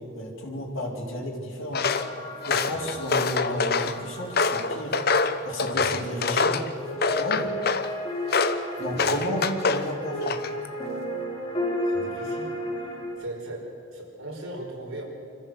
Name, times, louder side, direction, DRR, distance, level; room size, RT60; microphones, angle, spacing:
voice 1, 0.0-1.9 2.5-5.0 5.4-6.6 7.2-7.5 8.8-10.4, left 1 dB, 75° left, -4 dB, 4.0 m, -32 dB
Walk footsteps, 1.7-2.1 2.4-3.9 4.4-6.7 7.0-7.9 8.3-8.6 9.0-9.9 10.2-10.7, left 4 dB, 50° left, 0.9 m, -25 dB
sound 1, 1.8-13.1, left 1 dB, 25° left, 4.0 m, -34 dB
voice 2, 2.7-3.1 5.7-6.0 6.4-6.5 7.4-7.5 8.9-9.5 11.8-12.6 13.2-15.0, right 1 dB, 85° right, -1 dB, 5.0 m, -39 dB
25.5 x 14.5 x 7.8 m, 2.5 s
head